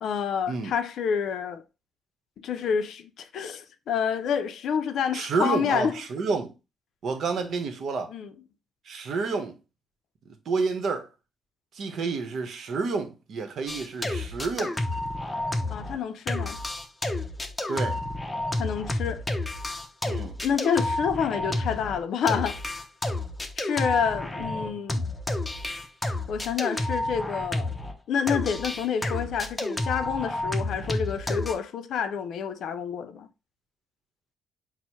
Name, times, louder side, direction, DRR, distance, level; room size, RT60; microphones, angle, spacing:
voice 1, 0.0-1.6 2.4-6.0 8.1-8.3 15.7-16.6 18.6-19.2 20.4-22.6 23.6-25.0 26.3-27.7 28.1-33.3, left 7 dB, 70° left, 0.4 m, -28 dB
voice 2, 5.1-6.5 7.0-8.1 8.9-9.6 10.5-11.1 11.7-14.8 17.7-18.0 20.1-20.4 24.4-24.8, right 4 dB, 65° right, 0.8 m, -29 dB
sound 1, 13.7-16.0 16.3-28.0 28.3-31.5, left 1 dB, 15° left, 0.6 m, -30 dB
4.3 x 2.0 x 4.5 m
cardioid pair, 90°, 0 cm